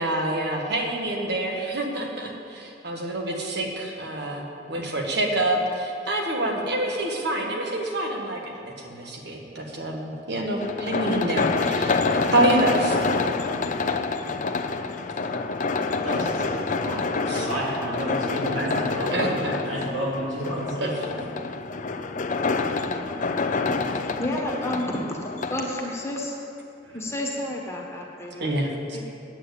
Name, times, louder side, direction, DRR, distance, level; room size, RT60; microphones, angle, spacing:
voice 1, 0.0-13.0 16.9-17.5 19.1-19.5 20.8-20.9 28.4-29.0, right 1 dB, 60° right, 1 dB, 1.5 m, -27 dB
sound 1, 10.6-25.7, left 4 dB, 40° left, 0.5 m, -27 dB
voice 2, 16.0-16.5 17.3-19.3 19.6-20.9 26.8-27.1, equal, 80° right, -5 dB, 3.1 m, -30 dB
voice 3, 24.2-25.2 25.5-26.4 26.9-28.6 28.9-29.1, left 1 dB, 15° left, -1 dB, 1.4 m, -30 dB
9.1 x 8.4 x 8.2 m, 2.7 s
head